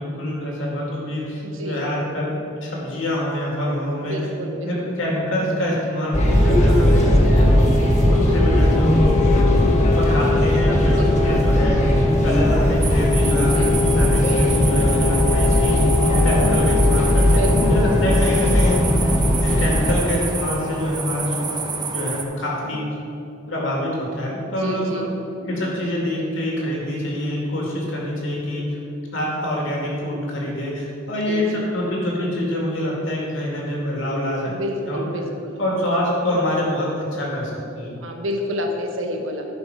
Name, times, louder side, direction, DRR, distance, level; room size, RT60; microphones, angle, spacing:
voice 1, 0.0-2.3 2.6-4.2 4.6-7.7 8.0-9.1 10.0-11.8 12.2-15.8 16.2-18.9 19.4-22.8 23.5-25.0 25.4-28.6 29.1-34.5 34.9-35.1 35.6-38.0, left 1 dB, 75° left, -3 dB, 2.3 m, -25 dB
voice 2, 1.4-1.8 4.0-4.9 6.7-7.5 10.9-11.5 13.2-13.9 17.2-17.9 24.5-25.1 31.1-31.4 34.4-35.6 38.0-39.5, equal, 80° right, 3 dB, 1.1 m, -30 dB
sound 1, 6.1-20.0, left 1 dB, 40° left, 1.3 m, -17 dB
sound 2, 12.8-22.2, right 5 dB, 20° right, 0.7 m, -29 dB
11.0 x 5.4 x 4.8 m, 2.8 s
head